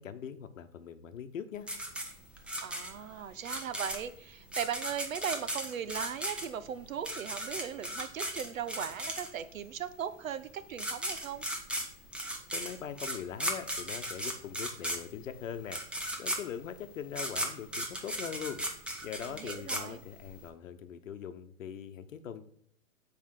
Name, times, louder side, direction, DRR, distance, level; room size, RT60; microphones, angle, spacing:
voice 1, 0.0-1.7 12.5-15.8 16.2-22.4, left 8 dB, 65° left, 10 dB, 1.0 m, -42 dB
sound 1, 1.7-9.6 10.4-10.5 10.7-20.4, right 1 dB, 5° right, 0.6 m, -36 dB
voice 2, 2.6-11.5 19.3-20.0, right 8 dB, 70° right, 13 dB, 0.8 m, -38 dB
7.4 x 4.9 x 4.8 m, 0.67 s
hypercardioid pair, 115°, 42 cm